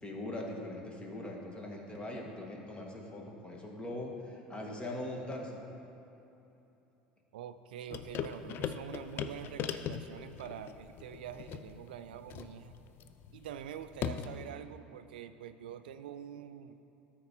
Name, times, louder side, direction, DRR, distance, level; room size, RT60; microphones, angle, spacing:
voice 1, 0.0-5.6, left 1 dB, 20° left, 0 dB, 1.6 m, -41 dB
voice 2, 7.3-12.7 13.3-16.8, right 9 dB, 80° right, 11 dB, 0.3 m, -45 dB
sound 1, 7.9-14.5, left 8 dB, 50° left, 0.5 m, -40 dB
13.0 x 4.4 x 4.3 m, 2.9 s
hypercardioid pair, 80°, 5 cm